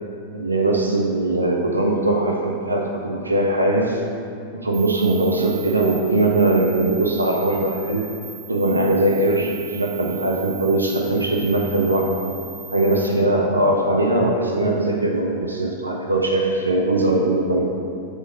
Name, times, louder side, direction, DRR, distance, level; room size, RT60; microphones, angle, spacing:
voice 1, 0.3-4.0 4.5-8.1 8.5-12.1 12.7-17.6, right 2 dB, 80° right, 0 dB, 0.5 m, -20 dB
sound 1, 4.7-13.1, right 7 dB, 35° right, 0.8 m, -39 dB
4.6 x 4.4 x 5.0 m, 2.5 s
figure-of-eight pair, 90°, 0 cm